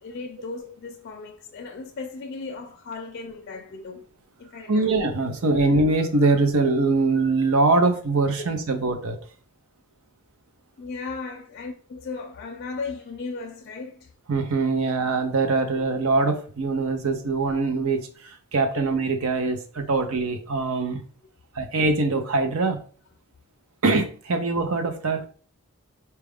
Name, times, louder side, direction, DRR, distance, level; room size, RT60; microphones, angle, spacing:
voice 1, 0.0-4.1 4.4-4.9 8.4-8.5 10.8-14.1 20.0-20.1, left 4 dB, 45° left, 0.4 m, -36 dB
voice 2, 4.7-9.2 14.3-21.0 21.6-22.8 23.8-25.3, right 3 dB, 70° right, 0.7 m, -23 dB
4.3 x 2.4 x 3.5 m
head